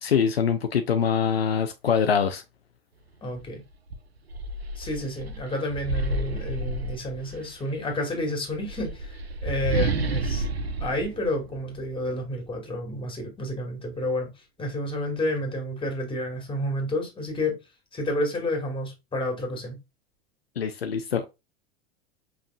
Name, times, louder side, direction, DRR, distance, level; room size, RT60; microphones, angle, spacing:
voice 1, 0.0-2.4 20.6-21.3, left 7 dB, 75° left, 0.7 m, -24 dB
voice 2, 3.2-3.6 4.8-10.5 10.8-14.3 14.6-17.6 17.9-19.8, left 1 dB, 15° left, 2.2 m, -30 dB
sound 1, 3.3-3.5 3.9-7.5 8.5-12.1, right 2 dB, 85° right, 0.6 m, -30 dB
5.2 x 3.6 x 2.3 m
figure-of-eight pair, 85°, 30 cm